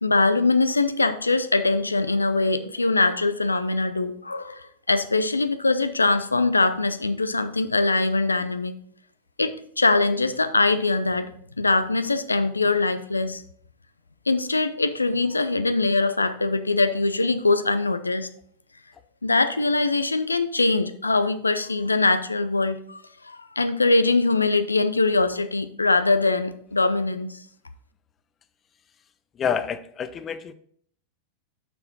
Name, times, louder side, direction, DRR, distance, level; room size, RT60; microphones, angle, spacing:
voice 1, 0.0-8.7 9.4-11.3 11.6-13.4 14.3-18.3 19.2-27.4, left 3 dB, 80° left, 0.5 m, -22 dB
voice 2, 29.4-30.5, left 7 dB, 25° left, 0.6 m, -28 dB
6.8 x 6.0 x 3.9 m
figure-of-eight pair, 90°, 0 cm